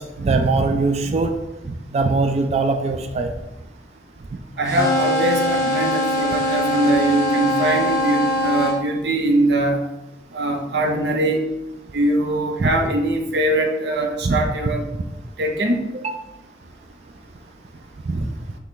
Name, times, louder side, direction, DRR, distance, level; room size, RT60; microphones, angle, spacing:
voice 1, 0.0-1.3 1.6-3.3 12.6-12.7 14.2-14.5 16.0-16.2 18.0-18.3, right 3 dB, 35° right, 5 dB, 0.3 m, -21 dB
voice 2, 4.6-9.8 10.3-11.4 11.9-14.9 15.4-15.8, right 1 dB, 70° right, 4 dB, 0.6 m, -21 dB
sound 1, 4.7-8.8, equal, 20° left, 0.9 m, -22 dB
5.8 x 2.2 x 3.7 m, 0.97 s
head